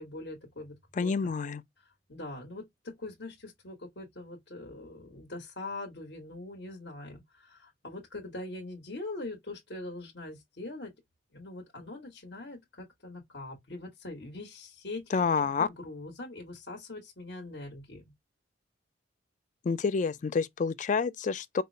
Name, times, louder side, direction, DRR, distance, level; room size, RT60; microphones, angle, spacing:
voice 1, 0.0-1.3 2.1-10.9 11.3-15.0 15.4-18.1, left 2 dB, 60° left, 1.3 m, -42 dB
voice 2, 0.9-1.6 15.1-15.7 19.6-21.6, left 5 dB, 40° left, 0.3 m, -28 dB
5.4 x 2.0 x 2.7 m
head